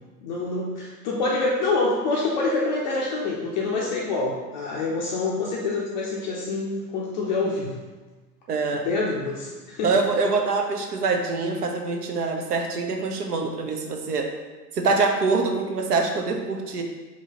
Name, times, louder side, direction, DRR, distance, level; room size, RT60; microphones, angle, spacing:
voice 1, 0.2-7.8 8.7-9.9, left 3 dB, 30° left, -4 dB, 0.4 m, -26 dB
voice 2, 8.5-8.8 9.8-14.3 14.8-16.8, right 4 dB, 70° right, 4 dB, 0.6 m, -24 dB
4.7 x 2.7 x 2.9 m, 1.3 s
figure-of-eight pair, 90°, 48 cm